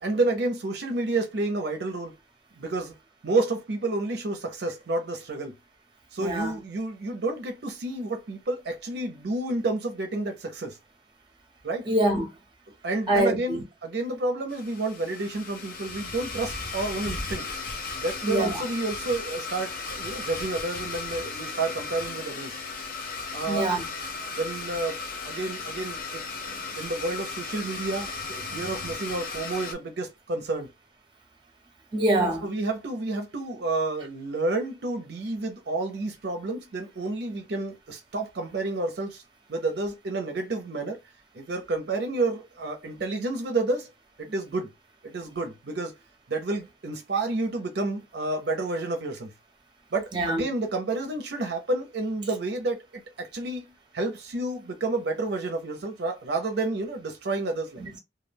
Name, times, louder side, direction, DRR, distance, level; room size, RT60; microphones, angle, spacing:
voice 1, 0.0-2.1 2.6-2.9 3.2-5.5 6.1-10.8 11.6-11.9 12.8-17.6 18.0-22.5 23.3-23.7 24.3-30.7 32.4-39.2 39.5-41.0 41.3-43.9 44.2-44.7 45.0-45.9 46.3-49.3 49.9-53.6 53.9-57.9, right 2 dB, 60° right, 0.5 m, -30 dB
voice 2, 6.2-6.6 11.8-12.2 13.1-13.6 18.2-18.6 23.5-23.8 31.9-32.5 50.1-50.4 57.8-58.0, right 1 dB, 25° right, 0.7 m, -25 dB
Domestic sounds home sounds, 14.5-29.7, left 4 dB, 50° left, 0.5 m, -36 dB
2.2 x 2.1 x 3.2 m
head